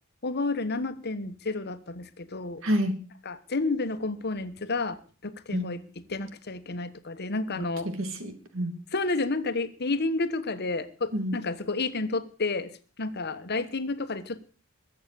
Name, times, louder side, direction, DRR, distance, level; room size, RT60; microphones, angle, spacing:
voice 1, 0.2-2.6 3.2-5.0 5.2-5.8 6.1-7.9 8.9-12.7 13.0-14.5, left 3 dB, 50° left, 1.2 m, -30 dB
voice 2, 2.6-3.0 5.5-5.7 7.6-8.8 11.1-11.4, equal, 65° right, 2.7 m, -29 dB
21.0 x 8.1 x 6.9 m
head